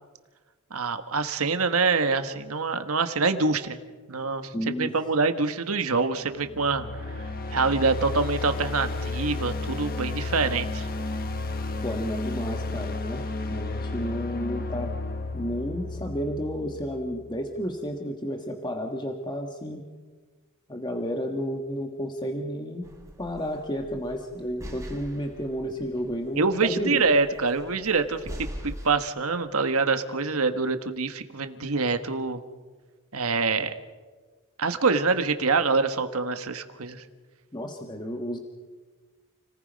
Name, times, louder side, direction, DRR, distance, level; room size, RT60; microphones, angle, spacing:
voice 1, 0.7-3.8 4.1-4.5 4.8-6.9 7.5-10.9 26.4-32.4 33.1-33.7 34.6-37.0, right 4 dB, 70° right, 8 dB, 1.4 m, -25 dB
voice 2, 4.5-4.9 11.8-14.9 15.3-19.9 20.7-22.8 23.2-27.1 37.5-38.4, equal, 20° left, 3 dB, 1.4 m, -32 dB
sound 1, 6.3-17.4, left 3 dB, 45° left, 1.4 m, -32 dB
sound 2, 22.8-28.9, equal, 15° right, 3.6 m, -42 dB
30.0 x 19.0 x 5.3 m, 1.4 s
head